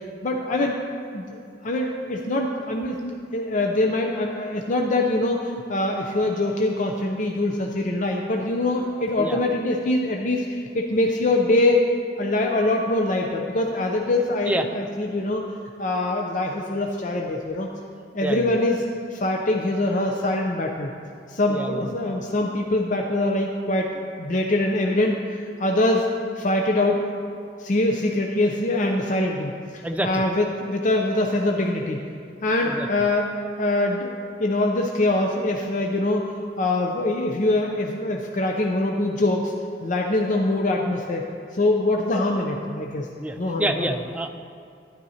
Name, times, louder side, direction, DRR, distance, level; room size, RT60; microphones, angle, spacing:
voice 1, 0.2-0.8 1.1-11.8 12.2-15.4 15.8-17.7 18.1-18.8 19.1-20.9 21.3-23.9 24.2-25.2 25.6-26.1 26.4-27.0 27.6-32.0 32.4-33.3 33.6-34.1 34.4-36.3 36.6-39.5 39.8-41.2 41.5-43.1 43.4-43.9, left 2 dB, 45° left, 1 dB, 0.6 m, -23 dB
voice 2, 18.2-18.6 21.5-21.9 29.8-30.2 32.6-32.9 43.2-44.3, right 1 dB, 10° right, 5 dB, 0.4 m, -27 dB
12.0 x 10.5 x 2.8 m, 2.4 s
head